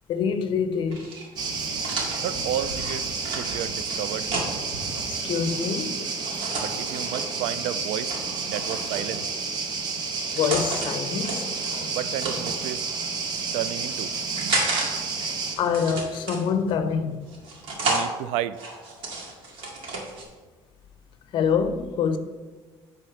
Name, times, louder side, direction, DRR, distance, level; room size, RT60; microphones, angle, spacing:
voice 1, 0.1-1.0 5.1-6.0 10.3-11.5 15.6-17.2 21.3-22.2, left 6 dB, 55° left, 0.7 m, -25 dB
sound 1, 0.9-5.0 6.2-7.3 8.1-9.3 10.0-10.9 11.2-12.7 13.4-14.9 15.2-16.7 17.3-18.1 18.5-20.2, right 2 dB, 65° right, 2.1 m, -32 dB
sound 2, 1.4-15.6, right 4 dB, 45° right, 1.0 m, -30 dB
voice 2, 2.2-4.3 6.6-8.1 8.4-9.3 11.9-12.8 13.5-14.1 14.4-14.7 17.8-18.6, right 11 dB, 85° right, 0.4 m, -32 dB
9.2 x 3.9 x 5.7 m
cardioid pair, 150°, 10 cm